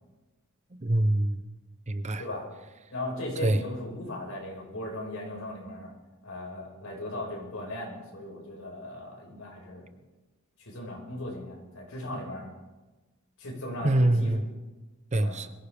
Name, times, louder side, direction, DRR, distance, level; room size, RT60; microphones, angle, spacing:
voice 1, 0.7-1.4 1.9-2.2 3.4-3.6 13.8-14.4 15.1-15.5, right 1 dB, 35° right, 11 dB, 0.7 m, -24 dB
voice 2, 2.9-5.9 6.2-9.9 10.6-12.5 13.4-14.3 15.2-15.4, left 1 dB, 75° left, -1 dB, 5.3 m, -37 dB
22.5 x 15.5 x 3.5 m, 1.1 s
head